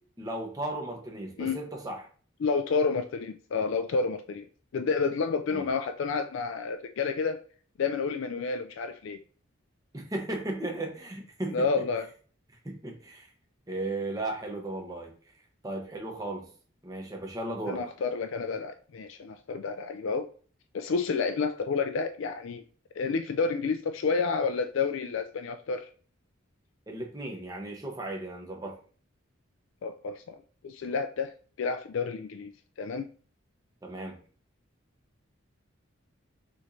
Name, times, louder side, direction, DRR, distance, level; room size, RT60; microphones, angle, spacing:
voice 1, 0.2-2.1 5.5-5.7 9.9-11.7 12.6-13.3 13.7-15.1 15.6-16.5 16.8-17.8 26.9-28.8 33.8-34.2, right 2 dB, 20° right, 1 dB, 0.9 m, -35 dB
voice 2, 2.4-4.5 4.7-7.4 7.8-9.2 11.5-12.1 17.7-20.3 20.7-22.6 23.0-25.9 29.8-30.4 30.6-31.3 31.6-32.5 32.8-33.1, left 4 dB, 70° left, 6 dB, 0.4 m, -30 dB
6.2 x 3.1 x 2.7 m, 0.43 s
head